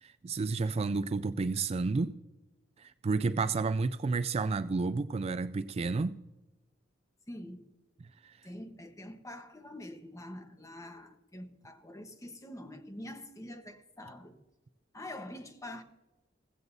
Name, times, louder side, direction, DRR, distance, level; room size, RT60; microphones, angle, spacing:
voice 1, 0.0-2.1 2.8-6.2 8.2-8.4, right 4 dB, 30° right, 0.3 m, -31 dB
voice 2, 7.3-7.7 8.4-14.4 14.9-15.8, left 1 dB, 15° left, 1.1 m, -45 dB
16.0 x 15.5 x 2.7 m
head